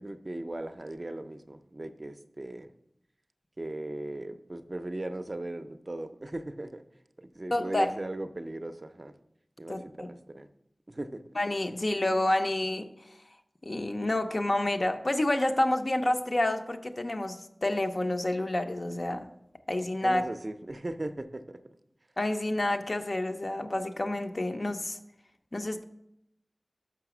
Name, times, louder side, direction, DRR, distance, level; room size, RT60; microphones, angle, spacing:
voice 1, 0.0-2.7 3.6-6.8 7.2-9.1 9.6-10.5 10.9-11.2 20.0-21.6, right 1 dB, 40° right, 9 dB, 0.4 m, -38 dB
voice 2, 7.5-7.9 9.7-10.1 11.4-12.9 13.6-19.3 19.7-20.2 22.2-25.0 25.5-25.8, left 1 dB, 50° left, 6 dB, 0.6 m, -29 dB
6.0 x 5.6 x 5.9 m, 0.79 s
wide cardioid pair, 65°, 0 cm